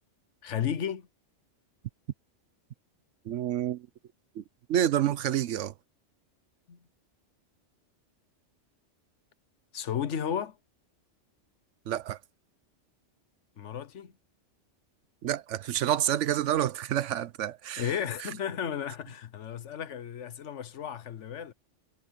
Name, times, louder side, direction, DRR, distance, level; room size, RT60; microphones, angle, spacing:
voice 1, 0.4-1.1 6.7-6.8 9.7-10.6 13.6-14.1 17.8-21.5, left 8 dB, 75° left, 1.3 m, -33 dB
voice 2, 3.3-3.9 4.4-4.5 4.7-5.7 11.9-12.2 15.2-17.9, right 11 dB, 80° right, 1.0 m, -28 dB
omnidirectional pair, 1.2 m